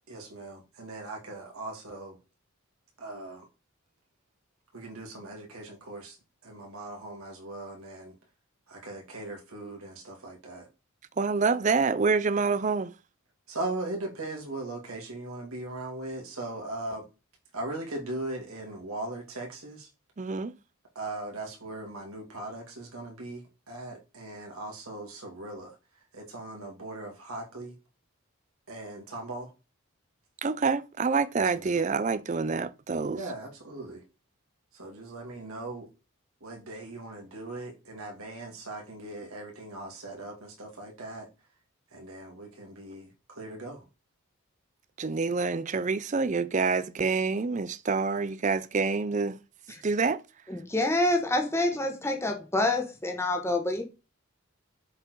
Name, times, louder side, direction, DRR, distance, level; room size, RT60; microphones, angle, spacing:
voice 1, 0.1-2.2 3.0-3.5 4.7-6.2 6.4-8.1 8.7-10.7 13.5-17.1 17.5-19.9 20.9-25.8 26.1-27.8 28.7-29.5 31.3-31.8 33.1-34.0 34.7-35.9 36.4-41.3 41.9-43.8, right 2 dB, 80° right, 2.7 m, -39 dB
voice 2, 11.2-12.9 20.2-20.6 30.4-33.2 45.0-49.4 49.8-50.2, right 4 dB, 35° right, 0.4 m, -27 dB
voice 3, 50.5-53.8, left 2 dB, 10° left, 1.3 m, -27 dB
7.2 x 4.6 x 4.7 m
head